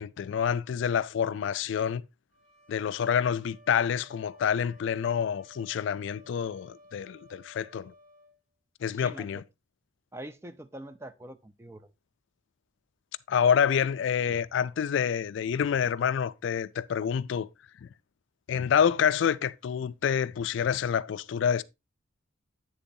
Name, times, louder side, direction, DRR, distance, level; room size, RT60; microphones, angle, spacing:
voice 1, 0.0-2.0 2.7-7.9 8.8-9.4 13.3-17.5 17.8-17.9 18.5-21.6, left 7 dB, 65° left, 0.3 m, -27 dB
sound 1, 2.3-8.4, equal, 40° right, 4.4 m, -56 dB
voice 2, 10.1-11.9, right 1 dB, 15° right, 0.3 m, -44 dB
8.0 x 6.9 x 2.6 m
head